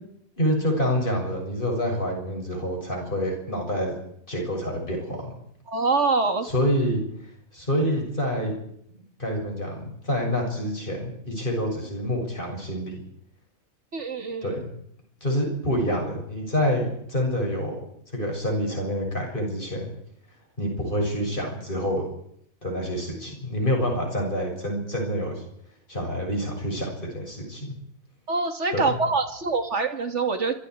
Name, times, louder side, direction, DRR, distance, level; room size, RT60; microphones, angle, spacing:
voice 1, 0.4-4.0 4.3-5.3 6.4-7.0 7.5-8.5 9.2-13.0 14.4-14.7 15.2-17.7 18.1-19.9 20.6-22.0 22.6-25.4 25.9-27.7 28.7-29.0, equal, 35° left, 0 dB, 7.5 m, -27 dB
voice 2, 5.7-6.5 13.9-14.6 28.3-30.6, right 4 dB, 55° right, 6 dB, 2.5 m, -25 dB
26.5 x 25.5 x 4.8 m, 0.71 s
omnidirectional pair, 1.5 m